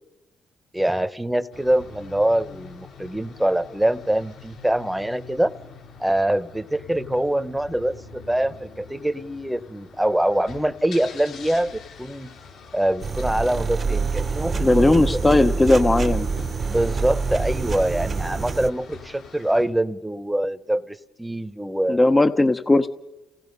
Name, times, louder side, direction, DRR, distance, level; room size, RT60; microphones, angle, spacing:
voice 1, 0.7-5.5 6.0-12.3 12.7-15.2 16.6-22.0, right 1 dB, 5° right, 13 dB, 1.0 m, -24 dB
sound 1, 1.5-19.6, left 5 dB, 75° left, 6.1 m, -45 dB
sound 2, 13.0-18.7, right 4 dB, 40° right, 0.9 m, -26 dB
voice 2, 14.6-16.3 21.9-22.9, left 2 dB, 20° left, 10 dB, 0.8 m, -17 dB
30.0 x 17.5 x 5.4 m, 0.98 s
cardioid pair, 90°, 0 cm